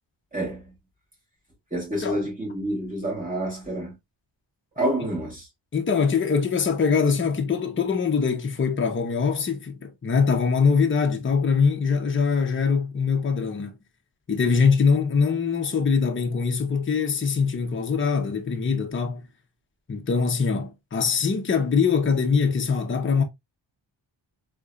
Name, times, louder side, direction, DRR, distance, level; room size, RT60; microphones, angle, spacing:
voice 1, 0.3-0.7 1.7-4.0 4.8-5.4, right 1 dB, 15° right, 2.4 m, -28 dB
voice 2, 5.7-13.8 14.3-19.2 19.9-23.2, left 5 dB, 25° left, 0.6 m, -23 dB
3.7 x 2.9 x 2.3 m
wide cardioid pair, 145°, 47 cm